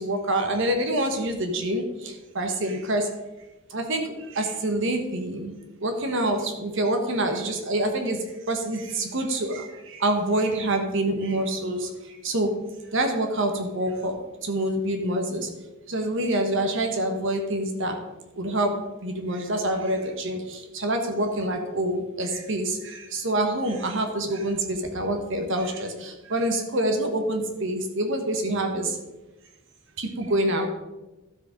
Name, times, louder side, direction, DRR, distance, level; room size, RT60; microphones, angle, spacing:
voice 1, 0.0-3.1 3.7-5.5 5.8-8.2 8.5-11.9 12.2-12.5 12.9-14.1 14.4-15.5 15.9-17.9 18.4-18.8 19.0-28.9 30.0-30.7, right 1 dB, 65° right, 5 dB, 1.2 m, -26 dB
12.5 x 4.9 x 5.2 m, 1.1 s
head